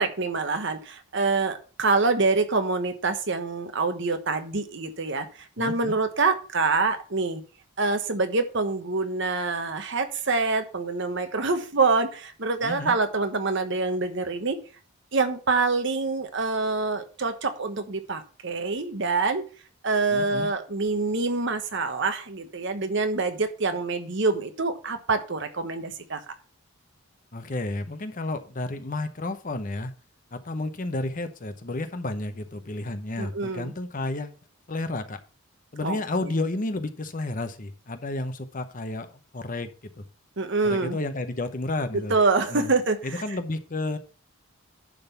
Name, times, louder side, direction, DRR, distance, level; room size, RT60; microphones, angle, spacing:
voice 1, 0.0-5.3 5.6-7.4 7.8-14.6 15.1-19.4 19.8-26.3 33.2-33.7 35.8-36.3 40.4-41.0 41.9-43.2, right 3 dB, 60° right, 8 dB, 1.2 m, -26 dB
voice 2, 5.6-6.0 12.6-12.9 20.1-20.5 27.3-29.9 30.3-34.3 34.7-35.2 35.7-39.7 40.0-40.1 40.6-42.2 42.5-42.7 43.0-44.0, left 2 dB, 40° left, 9 dB, 0.9 m, -31 dB
10.5 x 3.9 x 6.8 m, 0.38 s
head